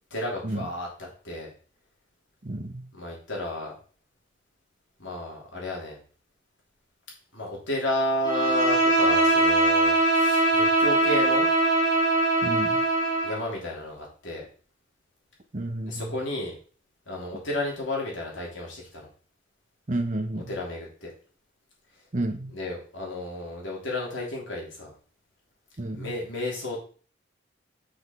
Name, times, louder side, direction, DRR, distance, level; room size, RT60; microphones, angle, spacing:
voice 1, 0.1-1.5 2.9-3.7 5.0-6.0 7.3-11.5 13.2-14.5 15.8-16.5 17.1-19.1 20.5-21.1 22.5-24.9 25.9-26.8, left 1 dB, 70° left, -2 dB, 3.1 m, -32 dB
voice 2, 2.4-2.9 12.4-12.8 15.5-16.0 19.9-20.5 22.1-22.5 25.8-26.1, right 1 dB, 40° right, 8 dB, 0.8 m, -30 dB
Bowed string instrument, 8.2-13.4, right 2 dB, 20° left, 2.1 m, -22 dB
6.0 x 5.1 x 5.3 m, 0.42 s
head